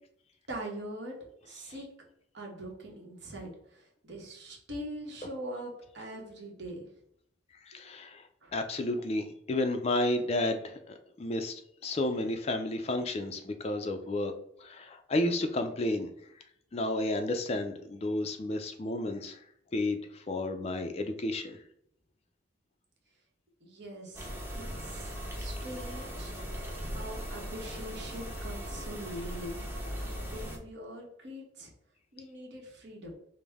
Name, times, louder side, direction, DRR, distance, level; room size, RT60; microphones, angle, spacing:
voice 1, 0.5-1.2 1.4-1.9 2.3-6.9 8.4-8.5 23.6-24.3 24.8-26.3 26.8-29.7 30.2-31.7 32.1-33.1, right 1 dB, 65° right, -1 dB, 1.1 m, -42 dB
voice 2, 7.7-8.2 8.5-14.3 14.6-16.1 16.7-19.4 19.7-21.6, left 2 dB, 30° left, 7 dB, 0.3 m, -32 dB
sound 1, 24.1-30.6, equal, 10° right, 0.6 m, -39 dB
5.1 x 2.0 x 3.4 m, 0.71 s
head